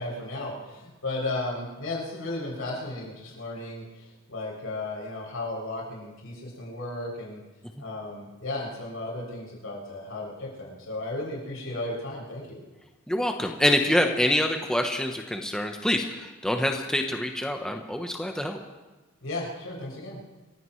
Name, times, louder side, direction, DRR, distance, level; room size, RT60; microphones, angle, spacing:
voice 1, 0.0-7.4 7.8-12.6 19.2-20.2, left 2 dB, 85° left, -4 dB, 7.1 m, -34 dB
voice 2, 13.1-18.6, left 1 dB, 5° left, 3 dB, 0.9 m, -26 dB
28.0 x 16.0 x 3.2 m, 1.1 s
head